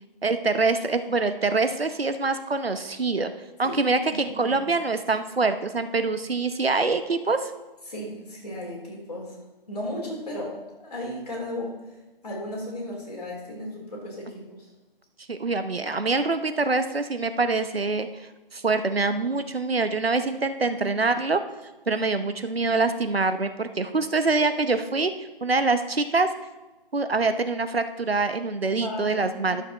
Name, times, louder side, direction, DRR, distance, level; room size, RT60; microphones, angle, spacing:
voice 1, 0.2-3.3 3.6-7.5 15.3-21.4 21.9-26.3 26.9-29.6, right 3 dB, 80° right, 9 dB, 0.9 m, -25 dB
voice 2, 4.1-4.6 7.9-9.4 9.7-10.6 10.8-11.7 12.2-14.6 20.7-20.8 28.8-29.2 29.5-29.6, left 1 dB, 40° left, -4 dB, 3.6 m, -35 dB
11.5 x 6.5 x 4.2 m, 1.1 s
figure-of-eight pair, 160°, 30 cm